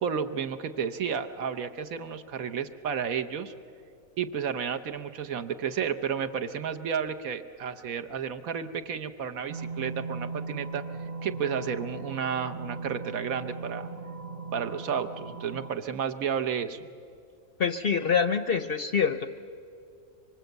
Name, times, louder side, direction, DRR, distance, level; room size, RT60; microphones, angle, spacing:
voice 1, 0.0-3.5 4.2-10.8 11.2-13.9 14.5-16.8, right 7 dB, 70° right, 8 dB, 1.3 m, -32 dB
sound 1, 9.5-15.7, right 3 dB, 40° right, 0.6 m, -38 dB
voice 2, 17.6-19.3, left 6 dB, 50° left, 10 dB, 0.8 m, -25 dB
24.5 x 24.5 x 8.0 m, 2.4 s
omnidirectional pair, 1.5 m